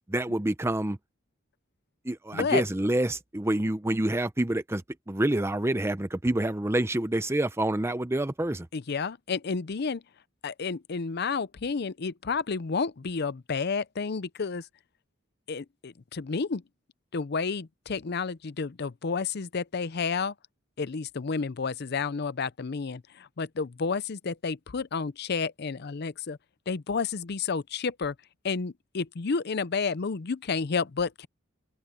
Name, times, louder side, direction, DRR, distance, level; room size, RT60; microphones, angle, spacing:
voice 1, 0.1-1.0 2.0-8.7, right 1 dB, 15° right, 0.7 m, -27 dB
voice 2, 2.3-2.6 8.7-10.0 10.4-14.7 15.5-16.6 17.1-20.3 20.8-26.4 26.7-28.1 28.4-31.3, left 5 dB, 55° left, 0.6 m, -31 dB
head